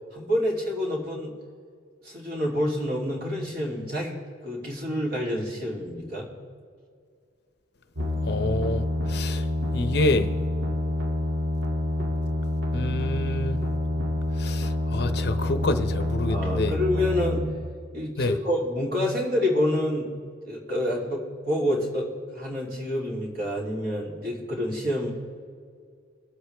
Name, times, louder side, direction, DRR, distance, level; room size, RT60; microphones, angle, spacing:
voice 1, 0.1-1.3 2.0-4.2 4.4-6.3 16.3-17.4 17.9-20.1 20.5-25.1, left 1 dB, 50° right, -3 dB, 3.0 m, -28 dB
sound 1, 8.0-17.5, left 1 dB, 85° right, 2.2 m, -27 dB
voice 2, 8.3-8.8 9.1-9.4 9.7-10.3 12.7-13.6 14.4-16.7 18.2-18.3, left 2 dB, 55° left, 9 dB, 0.7 m, -27 dB
22.0 x 8.0 x 3.4 m, 2.2 s
head